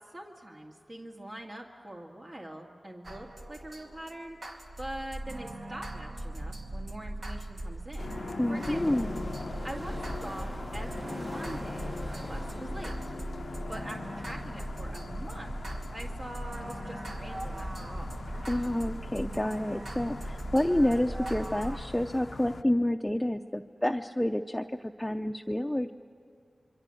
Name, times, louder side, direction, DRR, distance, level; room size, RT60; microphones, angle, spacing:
voice 1, 0.1-4.4 4.8-8.1 8.5-9.0 9.6-13.1 13.7-15.6 15.9-18.2, right 1 dB, 50° right, -2 dB, 2.1 m, -43 dB
sound 1, 3.0-21.8, right 1 dB, 80° right, 2.4 m, -39 dB
sound 2, 8.0-22.6, left 4 dB, 80° left, 0.5 m, -42 dB
voice 2, 8.4-9.2 18.5-25.9, left 1 dB, 10° left, 5 dB, 0.6 m, -29 dB
sound 3, 8.5-13.6, right 1 dB, 35° right, 1.1 m, -45 dB
27.5 x 24.0 x 7.7 m, 2.3 s
wide cardioid pair, 60°, 0 cm